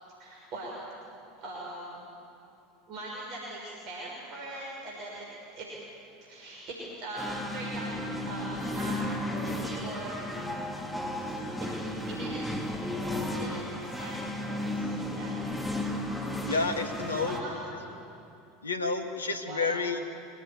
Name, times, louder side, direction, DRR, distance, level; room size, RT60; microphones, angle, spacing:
voice 1, 0.2-0.7 1.4-2.1 2.9-5.2 5.5-5.7 6.2-7.9 8.2-10.4 11.3-11.5 12.1-12.5 13.4-15.4 17.2-17.9 19.4-19.7, right 1 dB, 50° right, -4 dB, 6.2 m, -41 dB
sound 1, 7.2-17.4, left 1 dB, ahead, 3.1 m, -34 dB
voice 2, 16.5-17.4 18.6-20.1, left 3 dB, 85° left, 6 dB, 1.7 m, -30 dB
25.0 x 18.0 x 9.7 m, 2.6 s
figure-of-eight pair, 75°, 0 cm